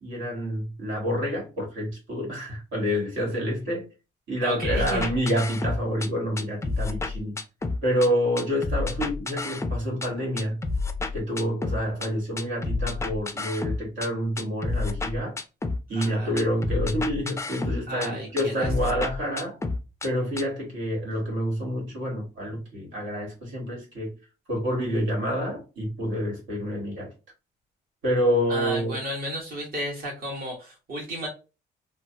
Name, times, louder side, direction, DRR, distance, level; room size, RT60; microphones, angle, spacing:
voice 1, 0.0-3.9 4.3-7.3 7.8-10.6 11.1-15.4 15.9-19.6 20.0-24.1 24.5-27.1 28.0-29.0, equal, 70° right, 1.6 m, -28 dB
voice 2, 4.4-5.1 15.9-16.4 17.9-18.7 28.5-31.3, right 1 dB, 50° right, 1.4 m, -33 dB
sound 1, 4.6-6.1 6.4-8.1 8.4-10.1 10.4-12.1 12.4-14.1 14.4-16.1 16.4-18.1 18.4-20.1 20.4-20.5, left 3 dB, 15° left, 0.4 m, -30 dB
3.1 x 2.1 x 2.7 m
cardioid pair, 90°, 20 cm